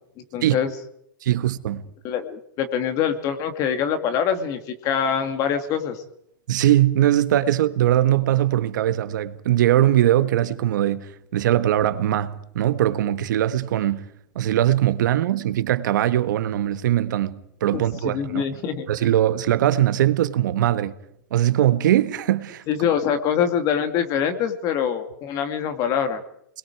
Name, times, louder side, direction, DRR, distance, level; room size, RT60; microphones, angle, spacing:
voice 1, 0.2-0.7 2.0-6.0 17.7-18.9 22.7-26.2, left 8 dB, 30° left, 2.4 m, -24 dB
voice 2, 1.2-1.9 6.5-14.1 14.3-18.4 18.9-20.9 21.3-22.6, right 12 dB, 70° right, 1.5 m, -21 dB
29.5 x 21.5 x 4.8 m
supercardioid pair, 155°, 11 cm